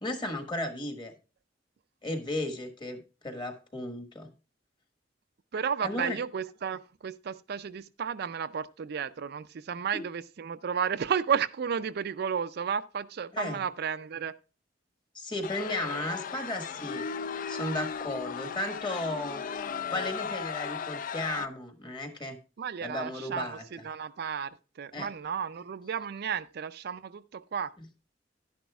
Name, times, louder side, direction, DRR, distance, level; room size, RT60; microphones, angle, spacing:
voice 1, 0.0-1.1 2.0-4.3 5.8-6.2 9.9-10.0 13.3-13.6 15.1-17.1 17.5-19.4 19.9-22.4 22.8-23.6 24.9-25.1 27.8-27.9, left 1 dB, 25° left, 1.4 m, -34 dB
voice 2, 5.5-14.3 22.6-27.7, right 7 dB, 60° right, 0.4 m, -33 dB
sound 1, 15.4-21.5, left 6 dB, 50° left, 0.4 m, -36 dB
11.5 x 10.0 x 2.3 m
head